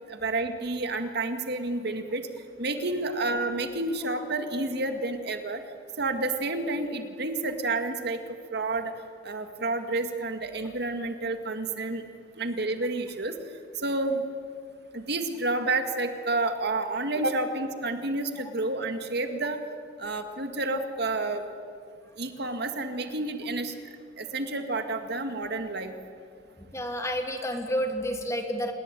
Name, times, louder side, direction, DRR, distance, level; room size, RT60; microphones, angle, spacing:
voice 1, 0.1-2.3 2.6-5.6 6.0-8.2 8.5-8.9 9.2-12.0 12.4-13.4 13.8-14.2 14.9-19.6 20.0-21.4 22.2-23.7 24.2-25.9, right 2 dB, 60° right, 7 dB, 2.1 m, -30 dB
voice 2, 26.6-28.7, equal, 15° left, 5 dB, 2.6 m, -30 dB
27.5 x 21.0 x 9.2 m, 2.3 s
head